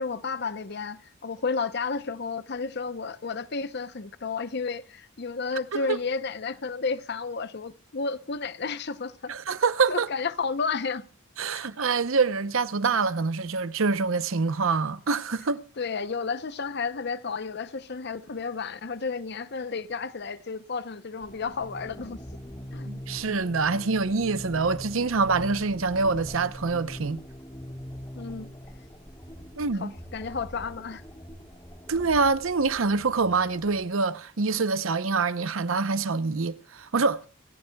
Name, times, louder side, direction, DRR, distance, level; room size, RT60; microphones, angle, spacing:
voice 1, 0.0-9.3 9.9-11.0 11.5-11.6 15.8-22.2 22.7-22.9 28.2-28.5 29.8-31.0, left 4 dB, 55° left, 0.7 m, -32 dB
voice 2, 9.3-10.1 11.4-15.6 22.9-27.2 29.6-29.9 31.9-37.3, right 4 dB, 80° right, 0.8 m, -25 dB
sound 1, 21.2-33.8, equal, 20° left, 2.3 m, -42 dB
26.5 x 14.5 x 2.3 m
head